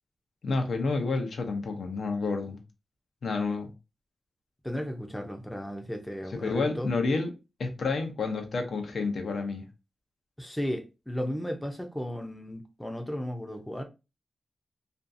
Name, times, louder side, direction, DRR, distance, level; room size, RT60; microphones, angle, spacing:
voice 1, 0.4-2.6 3.2-3.7 6.4-7.3 7.6-9.6, left 3 dB, 75° left, 0.5 m, -29 dB
voice 2, 4.6-6.9 10.4-13.8, equal, 5° left, 0.4 m, -35 dB
2.6 x 2.3 x 2.5 m
wide cardioid pair, 120°, 0 cm